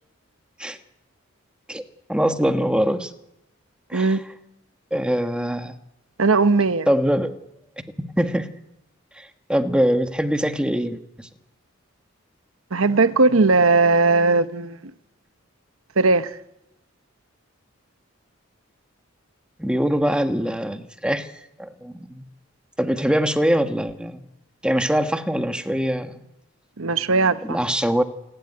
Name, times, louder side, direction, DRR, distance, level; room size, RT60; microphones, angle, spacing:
voice 1, 2.1-3.1 3.9-4.2 4.9-5.7 6.9-7.3 8.2-8.5 9.2-11.3 19.6-22.2 22.8-24.2 24.6-26.2 27.4-28.0, equal, 5° right, 1.3 m, -23 dB
voice 2, 6.2-6.9 12.7-14.8 16.0-16.4 26.8-27.6, right 3 dB, 85° right, 1.0 m, -18 dB
27.5 x 12.0 x 9.9 m
head